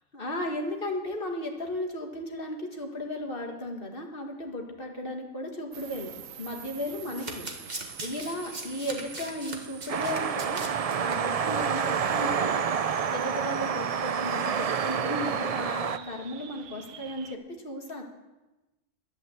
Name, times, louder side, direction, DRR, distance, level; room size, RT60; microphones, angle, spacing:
voice 1, 0.1-7.5 7.7-10.6 11.0-12.6 13.1-18.0, left 1 dB, 45° left, 2 dB, 2.0 m, -35 dB
sound 1, 5.7-17.3, right 9 dB, 90° right, 1.2 m, -47 dB
Domestic sounds home sounds, 6.9-11.2 11.5-11.7 11.9-12.0, right 2 dB, 35° right, 1.7 m, -40 dB
sound 2, 9.9-16.0, right 7 dB, 75° right, 0.3 m, -28 dB
11.5 x 10.5 x 7.8 m, 1.1 s
omnidirectional pair, 1.3 m